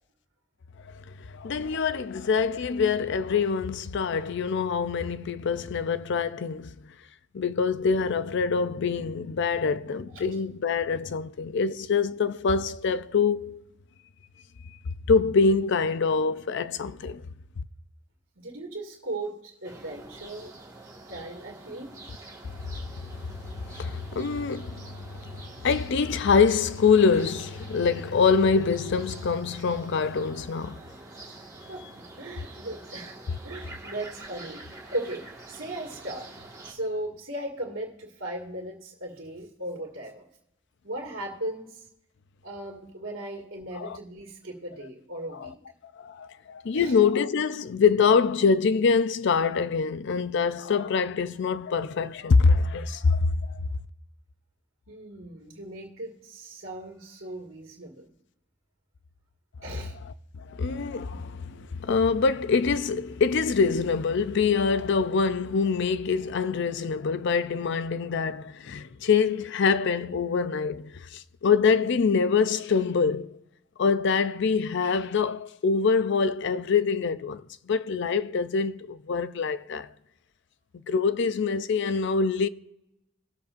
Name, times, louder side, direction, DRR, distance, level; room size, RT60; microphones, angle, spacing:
voice 1, 1.3-6.9 7.3-13.6 15.1-17.2 22.4-22.6 23.1-30.8 43.8-44.0 45.3-45.5 46.0-53.6 60.4-73.4 73.8-79.9 80.9-82.5, left 5 dB, 60° left, 0.5 m, -25 dB
voice 2, 18.4-20.5 21.1-21.9 31.7-33.2 33.4-36.3 36.6-40.3 40.8-41.9 42.4-45.6 46.7-46.9 54.9-58.1 59.6-59.9 61.1-61.2, right 1 dB, 80° right, 2.0 m, -37 dB
sound 1, 19.6-36.7, right 2 dB, 15° right, 1.7 m, -46 dB
20.0 x 7.1 x 2.5 m
head